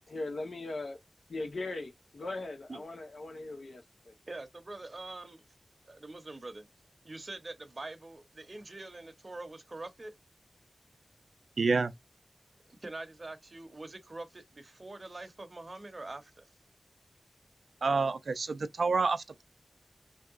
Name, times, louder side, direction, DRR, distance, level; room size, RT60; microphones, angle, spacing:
voice 1, 0.1-1.0 1.3-4.1, left 2 dB, 75° left, 1.0 m, -39 dB
voice 2, 4.3-5.4 5.9-6.6 7.0-10.1 12.7-16.5, right 2 dB, 40° right, 0.7 m, -44 dB
voice 3, 11.6-11.9 17.8-19.4, right 4 dB, 75° right, 0.3 m, -28 dB
3.3 x 2.7 x 2.4 m
wide cardioid pair, 100°, 0 cm